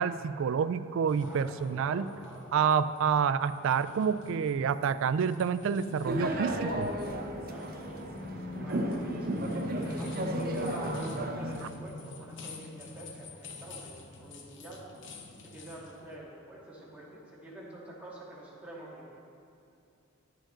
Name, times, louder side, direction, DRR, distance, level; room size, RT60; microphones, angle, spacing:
voice 1, 0.0-2.1 2.5-6.9, right 7 dB, 65° right, 14 dB, 0.3 m, -28 dB
sound 1, 1.1-16.2, left 4 dB, 60° left, 0.8 m, -51 dB
voice 2, 1.1-2.8 7.5-8.0 8.6-14.8 15.4-19.1, right 1 dB, 5° right, -7 dB, 1.8 m, -47 dB
sound 2, 6.0-11.6, right 1 dB, 45° right, 0.8 m, -34 dB
sound 3, 6.5-14.2, left 3 dB, 30° left, 0.3 m, -42 dB
11.5 x 7.4 x 3.8 m, 2.6 s
head